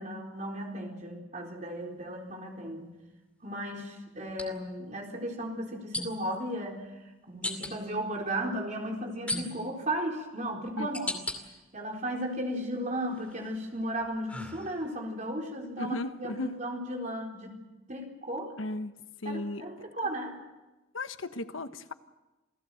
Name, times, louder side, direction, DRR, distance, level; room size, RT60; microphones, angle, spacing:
voice 1, 0.0-2.9 3.4-11.2 11.7-17.6 17.9-18.5 19.2-20.4, right 1 dB, 40° right, 1 dB, 4.3 m, -35 dB
Bottle Cork, 1.5-1.6 4.3-4.5 5.9-6.4 7.4-7.7 9.3-9.8 10.4-11.4 11.9-12.6 13.1-15.1, left 1 dB, 5° left, 2.5 m, -37 dB
voice 2, 15.8-16.5 18.6-18.9 19.2-19.7 20.9-21.9, left 2 dB, 85° left, 10 dB, 1.2 m, -35 dB
28.5 x 17.0 x 7.8 m, 1.1 s
head